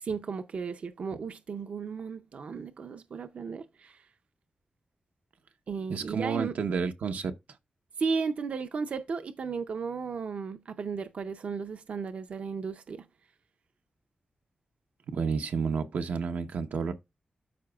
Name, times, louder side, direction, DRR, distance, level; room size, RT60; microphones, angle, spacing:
voice 1, 0.0-4.0 5.7-6.5 8.0-13.1, right 5 dB, 55° right, 0.5 m, -35 dB
voice 2, 5.9-7.3 15.1-16.9, right 5 dB, 85° right, 0.9 m, -30 dB
12.5 x 4.7 x 2.3 m
wide cardioid pair, 180°, 3 cm